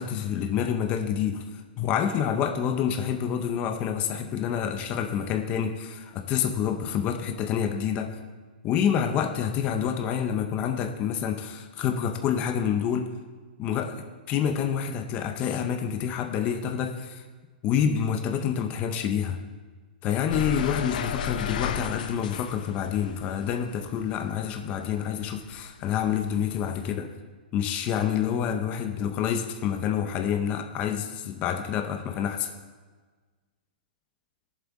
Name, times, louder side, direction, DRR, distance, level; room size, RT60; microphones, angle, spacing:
voice 1, 0.0-8.2 8.6-13.1 13.6-17.2 17.6-19.4 20.0-27.1 27.5-32.5, left 8 dB, 25° left, 5 dB, 0.7 m, -28 dB
sound 1, 20.3-25.0 25.3-26.9, left 8 dB, 55° left, 0.7 m, -33 dB
21.0 x 7.4 x 3.7 m, 1.4 s
hypercardioid pair, 160°, 5 cm